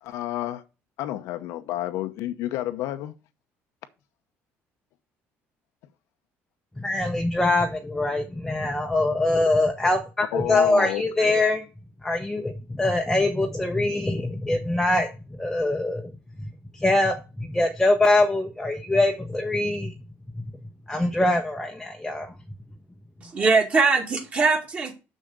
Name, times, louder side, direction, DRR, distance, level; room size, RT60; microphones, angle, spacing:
voice 1, 0.0-0.6 1.0-3.1 10.3-11.4, left 13 dB, 80° left, 0.9 m, -30 dB
voice 2, 6.8-11.6 12.0-16.1 16.7-19.9 20.9-22.3, left 2 dB, 5° left, 0.8 m, -23 dB
voice 3, 23.2-24.9, right 4 dB, 25° right, 2.1 m, -21 dB
6.6 x 6.3 x 6.6 m
cardioid pair, 155°, 5 cm